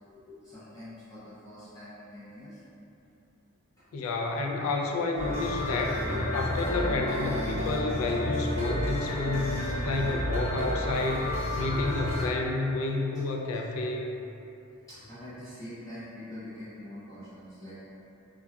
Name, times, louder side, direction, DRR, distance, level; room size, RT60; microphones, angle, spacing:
voice 1, 0.1-2.6 6.0-7.6 9.2-10.1 14.9-17.8, equal, 15° left, -14 dB, 0.6 m, -42 dB
voice 2, 3.9-6.0 6.3-14.1, left 3 dB, 65° left, 1 dB, 0.3 m, -30 dB
sound 1, 5.2-12.3, left 1 dB, 30° right, 0.7 m, -31 dB
3.7 x 2.2 x 2.2 m, 2.8 s
head